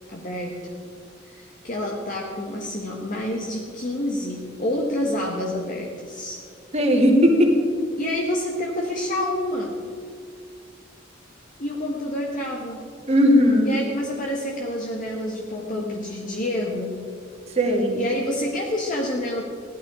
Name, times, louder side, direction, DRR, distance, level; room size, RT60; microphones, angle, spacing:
voice 1, 0.1-0.8 1.2-6.4 8.0-9.8 11.6-12.9 13.6-17.0 18.0-19.4, left 1 dB, 40° left, -1 dB, 1.4 m, -28 dB
voice 2, 6.7-7.5 13.1-13.8 17.5-18.0, equal, 35° right, 0 dB, 2.4 m, -17 dB
16.5 x 12.0 x 4.9 m, 2.2 s
head